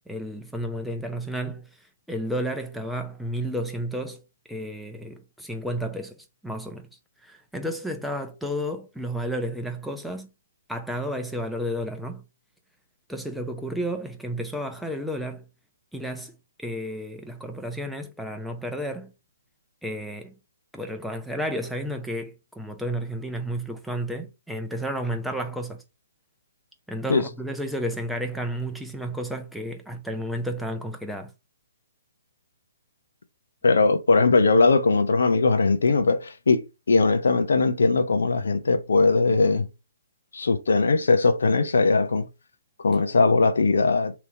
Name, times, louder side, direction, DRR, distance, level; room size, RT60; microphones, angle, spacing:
voice 1, 0.1-1.7 2.1-4.2 4.5-6.9 7.2-10.3 10.7-12.2 13.1-15.4 15.9-16.3 16.6-19.1 19.8-20.4 20.7-25.8 26.9-31.3, equal, ahead, 0.7 m, -32 dB
voice 2, 33.6-39.7 40.3-42.3 42.8-44.2, left 3 dB, 80° left, 0.8 m, -20 dB
3.5 x 3.0 x 3.9 m
hypercardioid pair, 145°, 0 cm